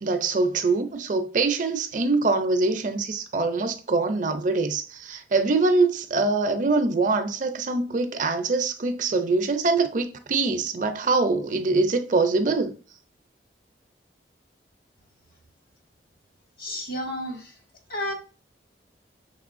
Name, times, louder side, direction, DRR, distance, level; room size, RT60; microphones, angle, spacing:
voice 1, 0.0-12.7, right 3 dB, 45° right, 0.5 m, -24 dB
voice 2, 16.6-17.5 17.9-18.1, left 1 dB, 55° left, 1.1 m, -31 dB
6.0 x 3.3 x 2.5 m
head